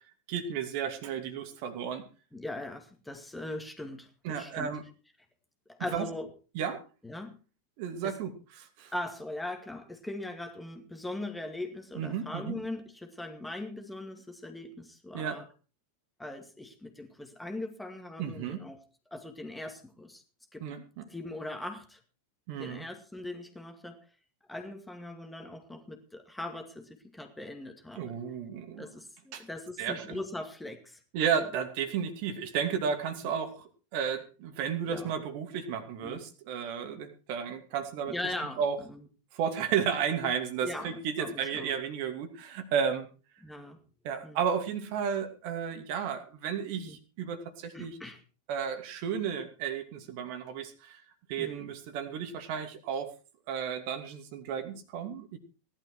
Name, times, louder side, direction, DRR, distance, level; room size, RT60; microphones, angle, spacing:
voice 1, 0.3-2.0 4.2-4.8 5.9-6.1 6.5-6.8 7.8-8.3 8.6-8.9 12.0-12.6 15.1-15.4 18.2-18.6 20.6-21.0 22.5-22.8 28.0-28.8 29.3-29.4 29.8-30.2 31.1-38.1 38.6-38.8 39.3-43.1 44.0-48.0 48.5-51.0 51.3-53.1 53.5-55.4, right 7 dB, 45° right, 7 dB, 2.6 m, -33 dB
voice 2, 2.3-4.7 5.7-6.3 7.0-7.4 8.0-8.1 8.9-15.5 16.2-18.8 19.1-20.2 20.5-20.6 21.1-22.0 22.6-24.0 24.5-28.2 28.8-31.0 31.4-31.5 34.8-35.1 36.0-36.2 38.1-39.1 40.6-41.7 43.4-43.8 44.2-44.4 46.8-47.0 47.7-48.2 51.4-51.7, left 2 dB, 5° left, 5 dB, 2.3 m, -40 dB
17.5 x 12.0 x 4.7 m, 0.36 s
figure-of-eight pair, 90°, 0 cm